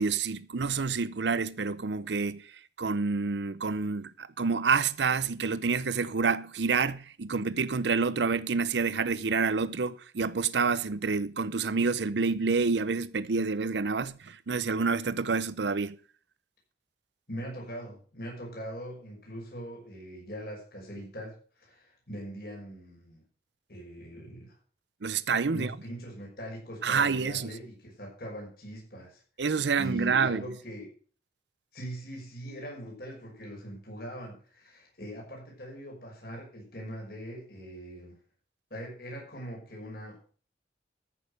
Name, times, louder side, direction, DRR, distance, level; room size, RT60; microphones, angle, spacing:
voice 1, 0.0-2.5 2.8-16.0 25.0-25.7 26.8-27.6 29.4-30.5, right 5 dB, 85° right, 0.7 m, -28 dB
voice 2, 17.3-23.2 23.7-24.5 25.5-29.2 29.8-30.9 31.7-38.1 38.7-40.3, equal, 60° left, 5.8 m, -41 dB
14.0 x 6.6 x 6.6 m
head